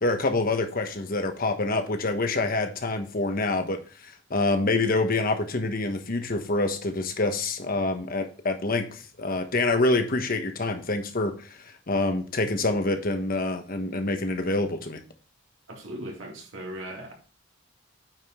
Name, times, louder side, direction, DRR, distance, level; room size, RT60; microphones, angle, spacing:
voice 1, 0.0-11.3 11.9-15.0, left 2 dB, 50° left, 1.2 m, -26 dB
voice 2, 15.7-17.1, right 1 dB, 80° right, 2.3 m, -38 dB
9.1 x 5.2 x 3.8 m
head